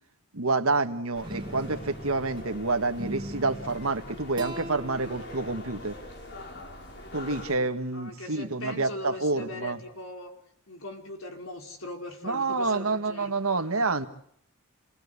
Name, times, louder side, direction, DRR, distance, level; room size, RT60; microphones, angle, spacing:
voice 1, 0.3-6.0 7.1-9.8 12.2-14.1, right 3 dB, 70° right, 8 dB, 1.8 m, -28 dB
sound 1, 1.1-7.6, left 1 dB, 50° left, 4.4 m, -43 dB
sound 2, 1.2-2.5 3.0-3.9 4.4-6.6, right 1 dB, 20° right, 2.1 m, -40 dB
voice 2, 7.9-10.3 10.7-13.4, left 1 dB, 65° left, 4 dB, 4.8 m, -40 dB
29.0 x 20.0 x 8.3 m, 0.71 s
head